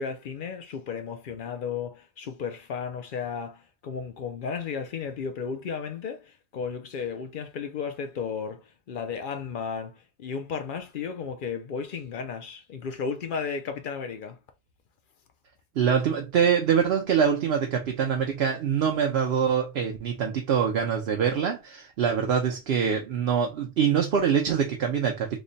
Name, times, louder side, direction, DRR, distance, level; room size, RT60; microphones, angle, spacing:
voice 1, 0.0-14.4, left 6 dB, 60° left, 0.6 m, -34 dB
voice 2, 15.8-25.4, right 7 dB, 70° right, 0.8 m, -24 dB
3.2 x 2.1 x 3.8 m
omnidirectional pair, 1.1 m